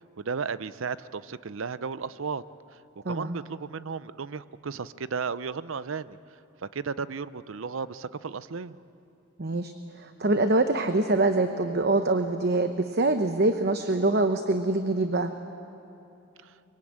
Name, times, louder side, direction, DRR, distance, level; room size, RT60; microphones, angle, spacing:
voice 1, 0.2-2.4 3.1-6.2 6.6-8.8 16.4-16.5, right 5 dB, 75° right, 16 dB, 0.6 m, -34 dB
voice 2, 3.0-3.3 9.4-15.3, right 2 dB, 50° right, 8 dB, 0.9 m, -25 dB
24.0 x 23.0 x 8.8 m, 2.8 s
head